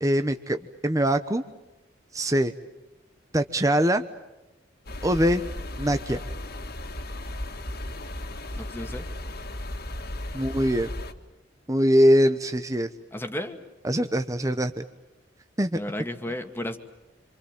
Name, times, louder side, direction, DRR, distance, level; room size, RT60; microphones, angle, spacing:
voice 1, 0.0-1.4 2.1-2.5 3.3-4.0 5.0-5.4 5.8-6.2 10.3-10.9 11.7-12.9 13.8-14.8 15.6-15.8, equal, 20° right, 8 dB, 1.0 m, -22 dB
sound 1, 4.9-11.1, left 1 dB, 55° left, 2.3 m, -35 dB
voice 2, 8.6-9.1 13.1-13.6 15.7-16.8, left 1 dB, 10° left, 5 dB, 2.1 m, -33 dB
27.5 x 27.0 x 7.5 m, 1.0 s
head